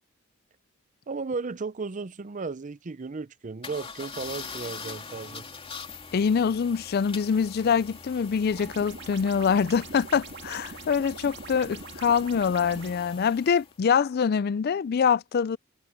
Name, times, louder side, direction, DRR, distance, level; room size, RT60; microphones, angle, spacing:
voice 1, 1.1-5.4, right 4 dB, 35° right, 0.5 m, -35 dB
sound 1, 3.6-13.8, left 5 dB, 25° left, 2.8 m, -43 dB
voice 2, 6.1-15.6, left 6 dB, 45° left, 0.4 m, -24 dB
sound 2, 8.5-12.9, right 4 dB, 55° right, 2.1 m, -43 dB
head